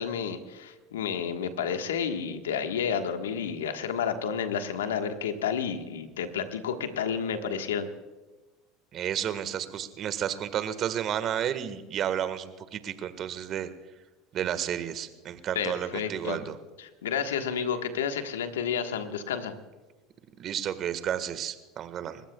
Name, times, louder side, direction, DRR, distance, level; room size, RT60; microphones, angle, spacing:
voice 1, 0.0-7.9 15.5-16.4 16.8-19.5, left 7 dB, 85° left, 7 dB, 1.4 m, -31 dB
voice 2, 8.9-13.7 14.3-16.5 20.4-22.2, right 9 dB, 45° right, 11 dB, 1.5 m, -32 dB
30.0 x 15.0 x 2.3 m, 1.2 s
hypercardioid pair, 85°, 0 cm